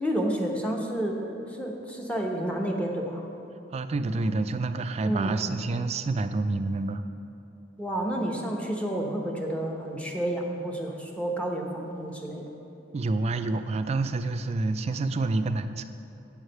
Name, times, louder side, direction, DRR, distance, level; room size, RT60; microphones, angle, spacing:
voice 1, 0.0-3.2 5.0-5.4 7.8-12.4, right 1 dB, 5° left, 0 dB, 0.8 m, -30 dB
voice 2, 3.7-7.0 12.9-15.8, right 3 dB, 35° right, 9 dB, 0.3 m, -28 dB
8.8 x 4.8 x 6.5 m, 2.8 s
head